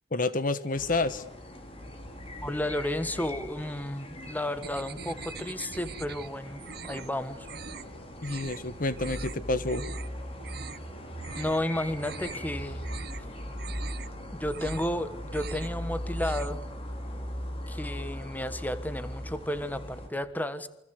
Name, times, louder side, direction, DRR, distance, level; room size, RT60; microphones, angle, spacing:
voice 1, 0.1-1.2 8.2-9.8, left 2 dB, 45° left, 13 dB, 1.2 m, -29 dB
sound 1, 0.7-20.1, equal, 30° left, 5.3 m, -39 dB
voice 2, 2.4-6.6 6.9-7.5 11.4-12.8 14.3-16.6 17.7-20.7, left 1 dB, 10° left, 12 dB, 1.4 m, -32 dB
sound 2, 4.6-6.3 6.6-7.1 7.4-7.9 8.2-8.6 9.0-9.4 9.7-10.1 10.4-10.8 11.2-11.6 11.9-12.5 12.8-13.2 13.6-14.1 14.4-15.0 15.3-15.8 16.1-16.6, right 6 dB, 55° right, 1.1 m, -43 dB
28.0 x 25.0 x 8.2 m, 0.81 s
head